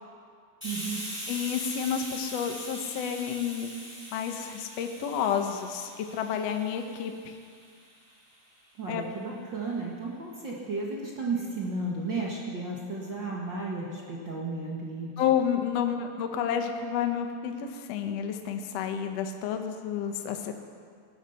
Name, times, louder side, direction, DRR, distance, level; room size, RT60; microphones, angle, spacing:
Hiss, 0.6-8.0, equal, 5° left, 5.2 m, -41 dB
voice 1, 0.6-1.0 8.8-15.2, right 3 dB, 45° right, -3 dB, 1.5 m, -33 dB
voice 2, 1.3-3.7 4.1-7.3 8.9-9.1 15.2-20.5, left 8 dB, 75° left, 5 dB, 1.5 m, -30 dB
19.5 x 12.5 x 5.8 m, 2.1 s
omnidirectional pair, 4.6 m